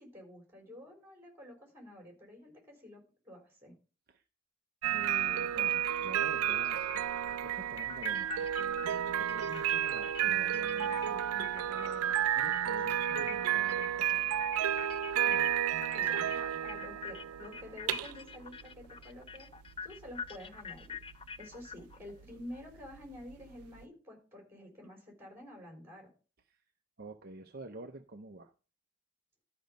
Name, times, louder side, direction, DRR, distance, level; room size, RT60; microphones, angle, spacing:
voice 1, 0.0-3.7 15.3-15.5 15.9-19.5 19.8-21.0 21.4-26.1, left 1 dB, 10° right, 1 dB, 4.0 m, -49 dB
sound 1, 4.8-23.8, right 10 dB, 80° right, 0.4 m, -32 dB
voice 2, 4.9-14.3 26.5-26.6 27.0-28.5, right 2 dB, 45° right, 5 dB, 0.6 m, -48 dB
sound 2, 6.6-12.1 12.4-22.6, left 6 dB, 25° left, 0.4 m, -46 dB
12.5 x 5.2 x 5.2 m, 0.35 s
head